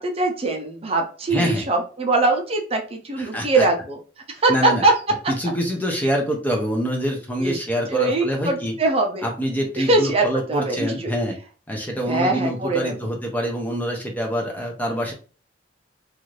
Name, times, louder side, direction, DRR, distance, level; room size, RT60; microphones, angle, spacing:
voice 1, 0.0-4.0 4.4-4.9 7.4-7.6 7.9-9.3 9.8-11.1 12.1-12.9, right 2 dB, 30° right, 2 dB, 0.5 m, -22 dB
voice 2, 1.3-1.7 3.2-3.6 4.5-4.8 5.3-8.8 9.2-11.4 11.7-15.1, equal, 10° left, 0 dB, 0.6 m, -25 dB
2.6 x 2.4 x 3.1 m, 0.38 s
head